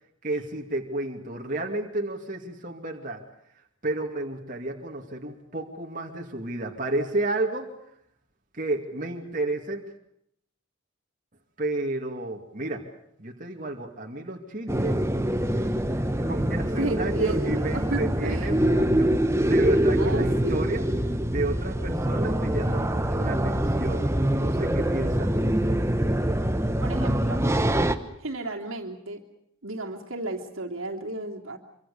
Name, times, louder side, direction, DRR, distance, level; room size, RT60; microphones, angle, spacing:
voice 1, 0.2-3.2 3.8-7.7 8.5-9.9 11.6-12.9 13.2-15.0 15.6-20.9 21.2-25.6, right 2 dB, 40° right, 1 dB, 2.6 m, -32 dB
sound 1, 14.7-27.9, right 1 dB, 15° right, 1.1 m, -24 dB
voice 2, 16.6-18.5 20.0-20.7 26.8-27.4 28.2-29.2 29.6-31.6, right 2 dB, 75° right, 2 dB, 3.1 m, -33 dB
26.0 x 25.0 x 7.0 m, 0.73 s
head